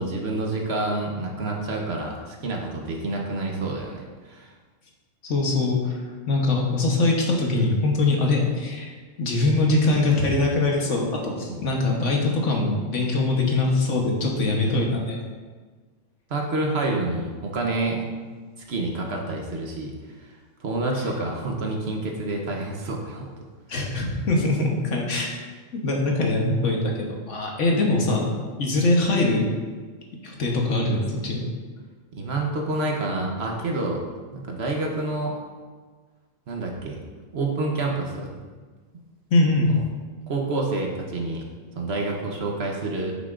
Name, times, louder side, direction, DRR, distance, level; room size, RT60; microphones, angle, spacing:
voice 1, 0.0-4.5 11.5-11.6 14.6-14.9 16.3-18.1 18.7-23.3 32.1-34.0 34.3-35.4 36.5-37.0 37.3-38.3 39.7-39.8 40.3-41.5 41.8-43.1, right 2 dB, 60° right, 0 dB, 1.1 m, -28 dB
voice 2, 5.2-5.9 6.3-8.9 9.2-15.2 23.7-25.3 25.7-28.2 28.6-29.5 30.2-31.4 39.3-39.7, left 2 dB, 75° left, 0 dB, 1.4 m, -22 dB
9.3 x 5.8 x 2.5 m, 1.4 s
omnidirectional pair, 1.3 m